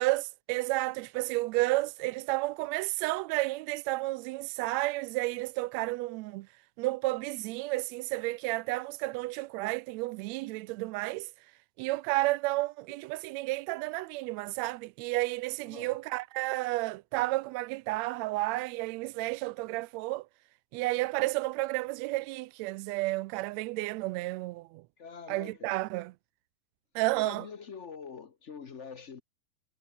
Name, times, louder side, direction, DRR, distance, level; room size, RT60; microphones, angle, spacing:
voice 1, 0.0-6.5 6.8-11.3 11.8-20.3 20.7-24.8 25.3-26.1 27.0-27.5, right 20 dB, 80° right, 1.7 m, -31 dB
voice 2, 15.7-16.0 25.0-25.7 27.2-29.2, left 6 dB, 75° left, 0.6 m, -45 dB
omnidirectional pair, 3.3 m